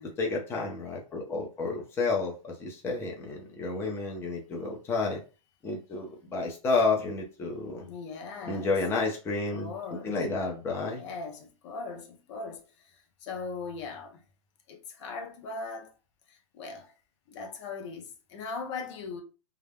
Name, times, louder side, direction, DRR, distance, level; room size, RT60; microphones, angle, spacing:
voice 1, 0.2-5.2 5.6-7.9 8.5-11.0, left 3 dB, 15° left, 0.5 m, -30 dB
voice 2, 7.8-8.8 9.5-10.2 10.8-14.2 14.7-15.9 16.3-16.9 17.3-19.2, left 4 dB, 55° left, 0.6 m, -40 dB
2.3 x 2.1 x 3.3 m
hypercardioid pair, 140°, 18 cm